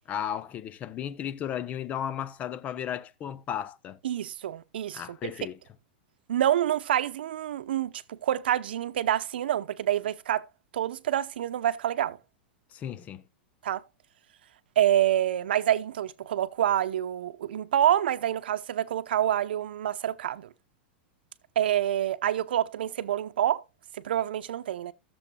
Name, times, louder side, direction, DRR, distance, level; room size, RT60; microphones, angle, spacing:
voice 1, 0.1-4.0 4.9-5.6 12.7-13.2, left 9 dB, 25° left, 0.6 m, -34 dB
voice 2, 4.0-5.3 6.3-10.4 10.7-12.2 13.6-13.8 14.8-20.5 21.6-23.6 23.9-24.9, right 11 dB, 85° right, 0.7 m, -27 dB
16.5 x 7.1 x 2.2 m
supercardioid pair, 140°, 5 cm